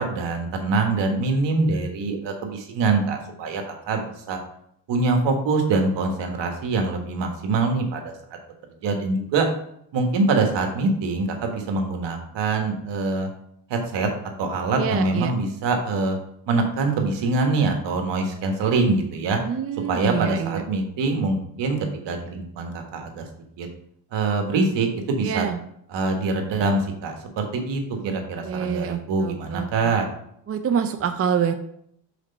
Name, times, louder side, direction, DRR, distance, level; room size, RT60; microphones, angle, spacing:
voice 1, 0.0-4.0 4.3-4.4 4.9-8.1 8.8-9.5 9.9-13.3 13.7-14.1 14.4-16.2 16.5-19.4 19.9-21.8 22.0-23.7 24.1-25.5 25.9-30.0, right 3 dB, 65° right, 4 dB, 1.5 m, -24 dB
voice 2, 14.8-15.3 19.4-20.6 25.2-25.6 27.9-29.9 30.5-31.5, right 8 dB, 30° right, 8 dB, 0.5 m, -26 dB
5.0 x 4.3 x 5.4 m, 0.71 s
supercardioid pair, 85°, 46 cm